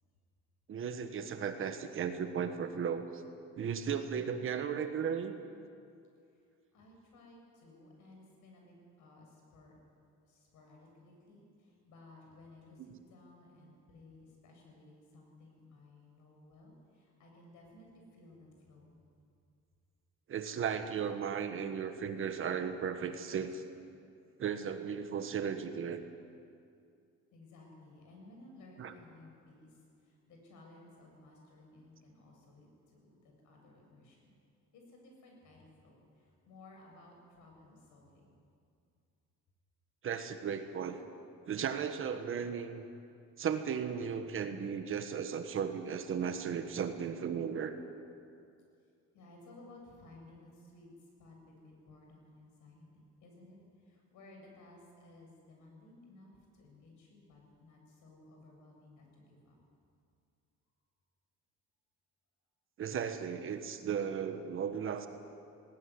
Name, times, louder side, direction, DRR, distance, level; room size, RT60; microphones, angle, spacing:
voice 1, 0.7-3.2 3.6-5.4 12.9-13.0 20.3-23.6 24.4-26.0 28.8-28.9 40.0-41.0 41.5-42.8 43.4-47.8 62.8-65.1, right 7 dB, 45° right, 8 dB, 1.4 m, -35 dB
voice 2, 6.7-9.8 10.3-19.0 27.3-34.3 34.7-38.4 49.1-59.6, left 2 dB, 75° left, 1 dB, 7.2 m, -57 dB
19.0 x 18.0 x 9.7 m, 2.5 s
cardioid pair, 170°, 30 cm